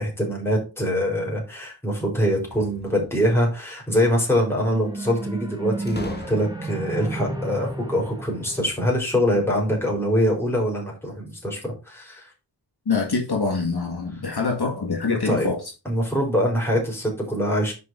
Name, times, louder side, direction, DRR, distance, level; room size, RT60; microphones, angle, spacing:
voice 1, 0.0-12.3 15.1-15.5 15.8-17.7, equal, 5° left, 3.9 m, -24 dB
sound 1, 2.4-3.4 5.9-6.9, left 2 dB, 25° left, 1.3 m, -39 dB
sound 2, 4.3-9.7, right 2 dB, 10° right, 1.5 m, -33 dB
voice 2, 12.9-15.6, left 4 dB, 65° left, 2.0 m, -25 dB
6.8 x 5.2 x 4.5 m
wide cardioid pair, 70°, 43 cm